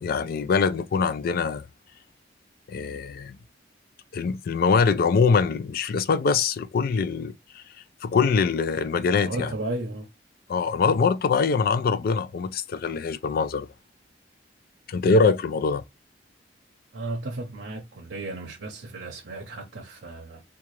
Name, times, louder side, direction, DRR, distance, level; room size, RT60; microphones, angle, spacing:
voice 1, 0.0-1.7 2.7-3.4 4.1-7.6 8.0-9.5 10.5-13.7 14.9-15.8, left 5 dB, 55° left, 0.3 m, -23 dB
voice 2, 9.3-10.1 16.9-20.4, right 2 dB, 80° right, 0.6 m, -34 dB
3.7 x 2.3 x 3.0 m
head